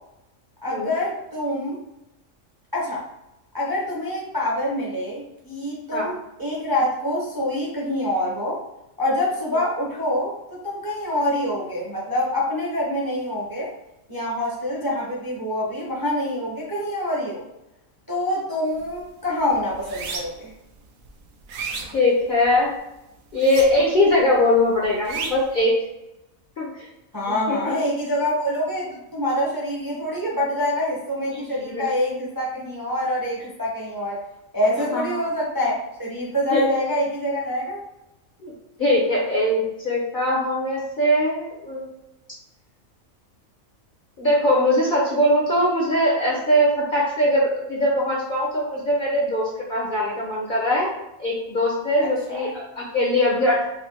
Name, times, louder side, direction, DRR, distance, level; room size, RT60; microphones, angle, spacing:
voice 1, 0.6-1.8 2.7-3.0 3.5-8.6 9.0-13.7 14.1-17.4 18.1-20.5 27.1-34.2 34.5-37.8 52.3-52.4, left 1 dB, 20° right, -5 dB, 0.7 m, -26 dB
sound 1, 18.7-19.0 19.4-20.5 21.0-22.7 23.3-24.1 24.3-25.6, right 4 dB, 75° right, 1.0 m, -33 dB
voice 2, 21.9-22.7 23.3-25.7 26.6-26.9 27.5-27.7 31.3-31.9 34.9-35.2 36.5-36.8 38.4-38.5 38.8-41.9 44.2-50.9 51.2-53.7, left 1 dB, 50° left, -3 dB, 0.7 m, -21 dB
4.9 x 2.1 x 2.8 m, 0.90 s
omnidirectional pair, 1.4 m